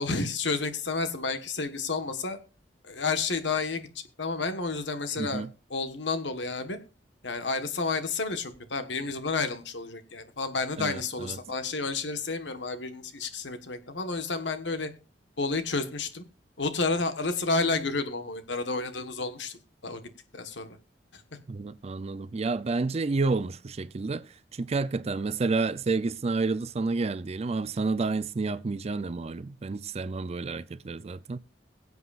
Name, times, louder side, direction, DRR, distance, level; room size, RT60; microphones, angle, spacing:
voice 1, 0.0-2.4 2.8-6.8 7.2-14.9 15.4-16.2 16.6-20.0 20.3-20.8 21.1-21.2, left 3 dB, 75° left, 1.4 m, -31 dB
voice 2, 5.2-5.5 10.8-11.4 21.5-31.4, right 3 dB, 35° right, 0.4 m, -30 dB
22.0 x 8.0 x 2.5 m
head